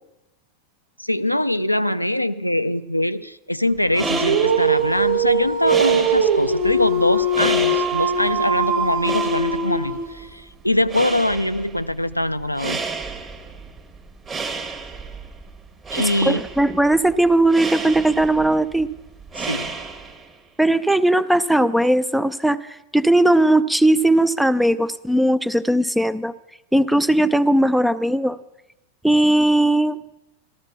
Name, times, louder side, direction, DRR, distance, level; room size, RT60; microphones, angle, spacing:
voice 1, 1.0-12.8 15.9-16.4 19.4-19.7, left 1 dB, 90° left, 12 dB, 0.4 m, -23 dB
sound 1, 3.7-20.4, right 4 dB, 20° right, 1.5 m, -32 dB
Dog, 3.9-10.3, right 2 dB, 50° right, 1.4 m, -21 dB
voice 2, 16.2-18.9 20.6-26.3 26.7-28.4 29.0-30.0, right 1 dB, ahead, 15 dB, 0.4 m, -18 dB
14.5 x 13.0 x 5.9 m, 0.93 s
figure-of-eight pair, 90°, 0 cm